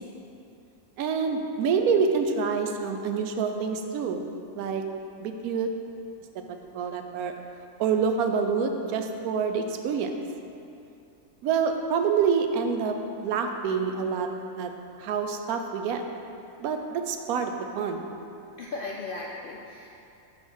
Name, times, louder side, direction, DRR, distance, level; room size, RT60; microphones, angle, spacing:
voice 1, 1.0-4.2 4.6-4.8 5.2-5.7 6.7-7.3 7.8-10.1 11.4-13.0 13.2-14.3 14.6-14.7 15.0-16.0 16.6-18.1, right 6 dB, 80° right, 5 dB, 1.1 m, -27 dB
voice 2, 18.6-19.9, left 3 dB, 65° left, -2 dB, 0.5 m, -36 dB
5.2 x 5.0 x 6.2 m, 2.7 s
omnidirectional pair, 1.5 m